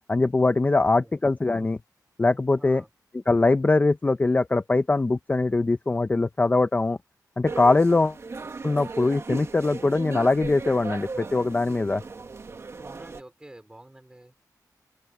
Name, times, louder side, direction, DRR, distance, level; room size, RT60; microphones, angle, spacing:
voice 1, 0.1-1.8 2.2-2.8 3.1-7.0 7.4-8.2 8.6-12.0, left 3 dB, 25° left, 0.7 m, -22 dB
voice 2, 2.6-2.9 12.8-14.3, right 1 dB, 10° right, 4.3 m, -48 dB
sound 1, 7.5-13.2, right 4 dB, 40° right, 2.1 m, -37 dB
open air
wide cardioid pair, 140°, 7 cm